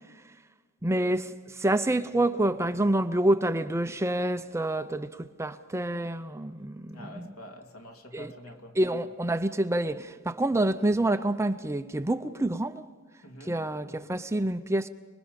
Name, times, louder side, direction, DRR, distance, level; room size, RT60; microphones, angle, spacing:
voice 1, 0.8-7.3 8.1-8.3 8.7-12.9 13.4-14.9, right 1 dB, 15° right, 0.5 m, -27 dB
voice 2, 6.9-8.8 13.2-13.6, left 1 dB, 75° left, 2.4 m, -46 dB
29.5 x 21.0 x 5.2 m
head